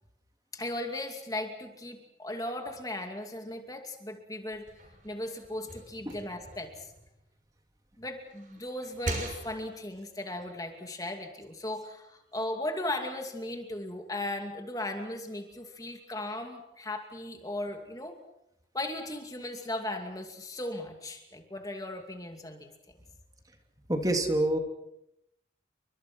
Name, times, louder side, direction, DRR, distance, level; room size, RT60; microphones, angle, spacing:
voice 1, 0.5-4.7 5.0-6.9 8.0-18.2 18.7-22.7, left 1 dB, 20° left, 4 dB, 2.6 m, -37 dB
sound 1, 4.5-7.7 8.1-9.9, right 1 dB, 45° right, 6.8 m, -41 dB
voice 2, 23.9-24.6, right 1 dB, 20° right, 4 dB, 3.0 m, -26 dB
30.0 x 25.0 x 6.2 m, 0.82 s
head